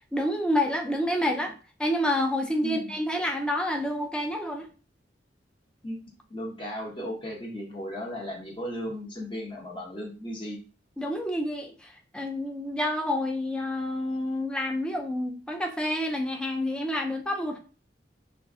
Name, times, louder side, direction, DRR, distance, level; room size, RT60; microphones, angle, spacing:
voice 1, 0.1-4.7 11.0-17.6, left 1 dB, 5° left, 0.4 m, -28 dB
voice 2, 2.6-2.9 5.8-6.0 6.3-10.6, equal, 30° left, 0.9 m, -36 dB
2.4 x 2.1 x 3.6 m
head